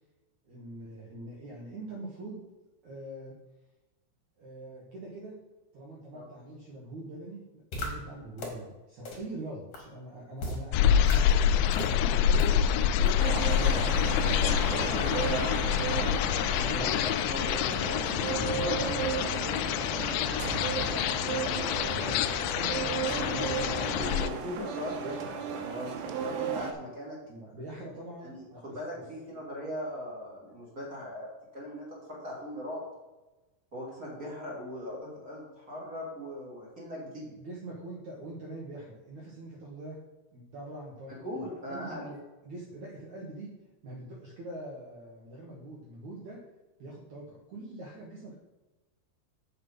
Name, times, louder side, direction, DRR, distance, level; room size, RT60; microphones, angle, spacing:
voice 1, 0.4-2.4 2.8-3.3 4.4-5.4 5.7-11.6 12.3-12.5 13.5-13.8 15.8-16.1 16.4-17.0 17.8-18.9 20.5-22.2 22.5-24.1 27.3-29.1 37.4-40.0 40.3-43.5 43.8-46.4 46.8-48.4, right 1 dB, 65° right, -4 dB, 1.9 m, -43 dB
sound 1, 7.7-7.9 8.4-8.5 9.0-9.1 9.7-9.8 10.4-10.6 11.0-11.1 11.7-11.9 12.4-12.5 13.0-13.1, left 2 dB, 45° left, 2.1 m, -35 dB
sound 2, 10.7-24.3, left 9 dB, 85° left, 2.5 m, -27 dB
voice 2, 11.8-15.8 16.7-18.8 19.1-19.6 23.6-27.2 28.2-32.8 33.7-37.4 41.2-42.1, left 1 dB, 25° right, -5 dB, 2.0 m, -39 dB
sound 3, 13.2-26.7, right 8 dB, 85° right, 3.4 m, -35 dB
7.9 x 7.4 x 5.5 m, 1.1 s
omnidirectional pair, 5.6 m